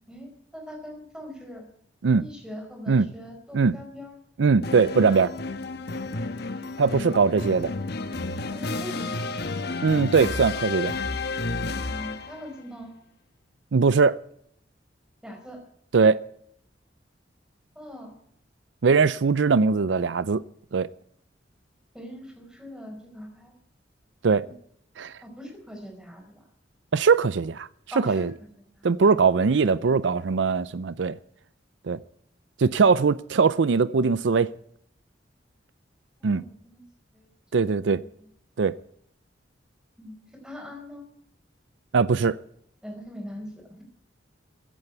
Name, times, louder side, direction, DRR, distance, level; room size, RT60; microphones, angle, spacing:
voice 1, 0.1-1.6 2.2-4.1 7.3-7.5 8.5-9.5 11.8-12.9 15.2-15.6 17.7-18.1 21.9-23.5 24.4-24.5 25.2-26.4 27.9-28.3 28.8-28.9 29.6-29.9 36.3-36.8 37.1-38.0 40.0-41.0 42.8-43.8, equal, 5° right, 4.8 m, -42 dB
voice 2, 4.4-5.3 6.8-7.7 9.8-11.0 13.7-14.2 15.9-16.2 18.8-20.4 20.7-20.9 24.2-24.5 25.0-25.2 26.9-27.7 28.1-28.3 28.8-31.2 31.8-32.0 32.6-34.5 36.2-36.4 37.5-38.0 38.6-38.7 41.9-42.4, right 5 dB, 80° right, 0.5 m, -21 dB
sound 1, 4.6-12.5, left 3 dB, 60° left, 1.2 m, -31 dB
15.5 x 9.0 x 8.0 m
head